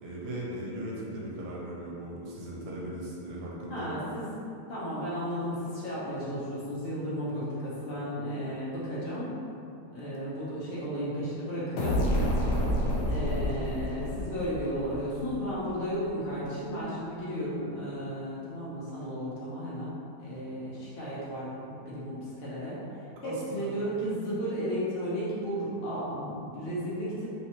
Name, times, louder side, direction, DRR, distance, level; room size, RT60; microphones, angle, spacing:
voice 1, 0.0-3.9 23.2-23.7, right 1 dB, 75° right, -5 dB, 1.3 m, -38 dB
voice 2, 3.7-4.3 4.7-9.4 9.8-12.1 13.1-22.8 23.2-27.3, equal, 45° left, -9 dB, 1.0 m, -34 dB
sound 1, 11.8-15.4, equal, 85° left, 1.2 m, -29 dB
3.3 x 3.0 x 2.9 m, 2.6 s
omnidirectional pair, 1.7 m